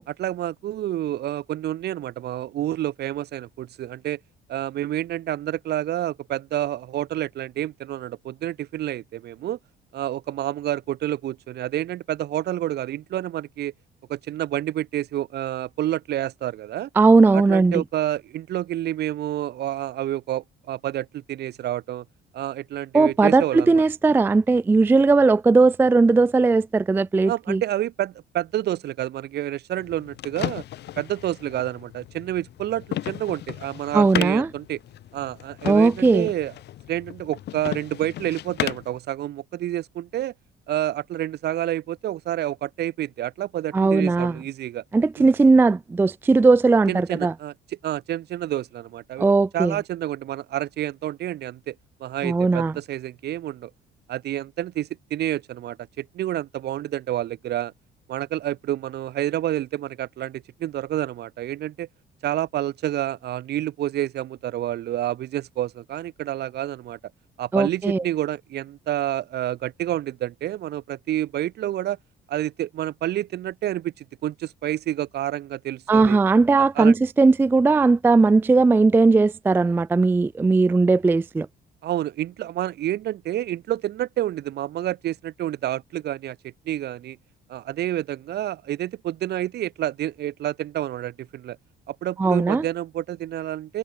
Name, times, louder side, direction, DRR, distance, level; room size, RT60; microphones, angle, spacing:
voice 1, 0.1-4.2 4.5-9.6 9.9-13.7 14.1-16.9 17.3-22.0 22.3-23.8 27.3-30.6 31.0-34.8 35.1-36.5 36.9-40.3 40.7-44.8 45.2-45.3 46.9-47.5 47.8-49.3 49.5-51.7 52.0-53.7 54.1-57.7 58.1-61.9 62.2-67.0 67.4-72.0 72.3-76.2 76.6-76.9 81.8-86.4 86.6-87.2 87.5-91.6 91.9-93.8, right 13 dB, 65° right, 1.6 m, -29 dB
voice 2, 17.0-17.8 22.9-27.6 33.9-34.5 35.6-36.3 43.7-44.4 44.9-47.3 49.2-49.8 52.2-52.7 67.5-68.0 75.9-81.5 92.2-92.6, right 3 dB, 10° right, 0.3 m, -18 dB
sound 1, 29.8-39.0, left 13 dB, 70° left, 2.7 m, -35 dB
cardioid pair, 115°, 18 cm